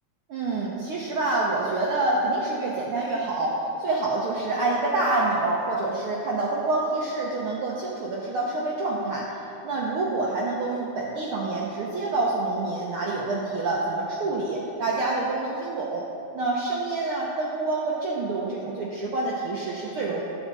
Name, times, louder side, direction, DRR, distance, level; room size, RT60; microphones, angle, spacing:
voice 1, 0.3-9.3 9.6-16.0 16.3-20.2, right 2 dB, 70° right, -4 dB, 1.4 m, -27 dB
10.5 x 8.2 x 4.0 m, 2.7 s
omnidirectional pair, 3.4 m